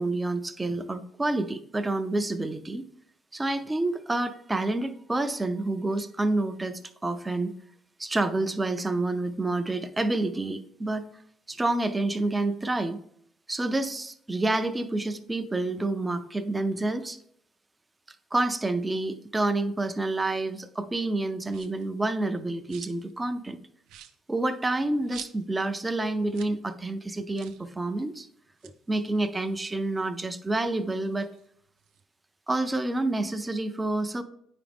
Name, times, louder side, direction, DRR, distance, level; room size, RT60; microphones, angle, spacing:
voice 1, 0.0-2.8 3.3-7.5 8.0-11.1 11.5-13.0 13.5-17.2 18.3-23.6 24.3-28.3 28.6-31.3 32.5-34.2, right 2 dB, 10° right, 9 dB, 0.4 m, -28 dB
sound 1, 21.5-21.9 22.3-23.2 23.5-23.6 23.8-25.7 26.0-26.1 26.3-26.6 26.9-27.0 27.3-27.7 28.4-30.2 30.6-32.0, right 10 dB, 85° right, 0.5 m, -48 dB
9.3 x 4.9 x 3.4 m, 0.71 s
cardioid pair, 155°, 0 cm